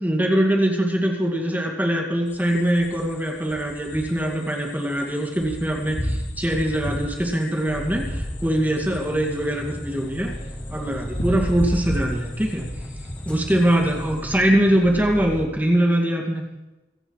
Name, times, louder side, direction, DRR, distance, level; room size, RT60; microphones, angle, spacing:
voice 1, 0.0-10.3 10.7-12.7 13.3-16.5, right 1 dB, 10° right, 1 dB, 2.3 m, -22 dB
sound 1, 2.3-14.2, equal, 80° left, 2.9 m, -33 dB
sound 2, 7.7-15.4, equal, 5° left, 1.8 m, -36 dB
25.5 x 8.6 x 4.8 m, 1.1 s
head